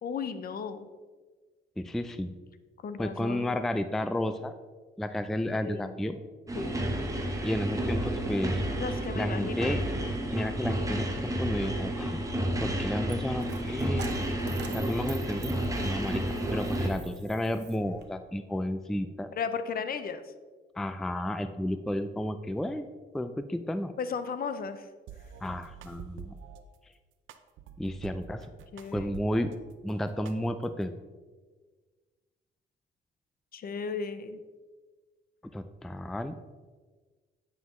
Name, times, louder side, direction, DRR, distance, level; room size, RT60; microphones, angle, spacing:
voice 1, 0.0-0.9 2.8-3.6 5.6-5.9 6.5-6.8 8.7-9.7 15.8-16.0 19.3-20.2 24.0-24.9 28.7-29.1 33.5-34.4, left 5 dB, 50° left, 10 dB, 0.6 m, -35 dB
voice 2, 1.8-2.4 3.0-4.5 5.0-6.2 7.4-8.6 9.2-9.8 10.3-12.2 12.6-14.1 14.7-15.5 15.8-16.2 16.5-19.3 20.8-22.9 23.1-23.9 25.4-26.3 27.8-28.4 28.9-29.5 29.8-30.9 35.5-36.4, left 1 dB, ahead, 10 dB, 0.3 m, -32 dB
sound 1, 6.5-16.9, right 1 dB, 15° right, 1.1 m, -31 dB
Coin (dropping), 11.9-18.1, right 6 dB, 60° right, 0.9 m, -48 dB
sound 2, 25.1-26.6 27.3-29.6 29.9-30.9, right 8 dB, 80° right, 0.5 m, -47 dB
9.3 x 5.6 x 3.1 m, 1.4 s
cardioid pair, 90°, 20 cm